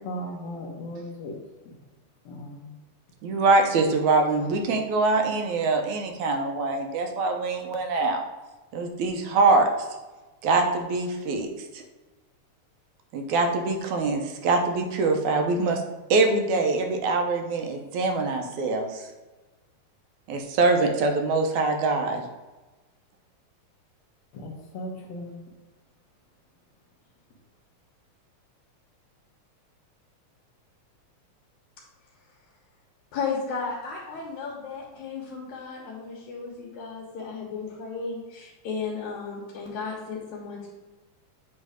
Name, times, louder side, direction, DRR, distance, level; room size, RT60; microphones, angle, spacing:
voice 1, 0.0-1.3 2.3-2.7 24.3-25.4, equal, 70° left, 0 dB, 2.1 m, -37 dB
voice 2, 3.2-8.2 8.7-9.7 10.4-11.5 11.7-11.8 13.1-15.8 16.1-19.1 20.3-22.2, right 3 dB, 85° right, 4 dB, 2.2 m, -24 dB
voice 3, 33.1-40.7, left 5 dB, 85° left, -5 dB, 2.5 m, -34 dB
8.3 x 3.3 x 5.0 m, 1.2 s
omnidirectional pair, 3.3 m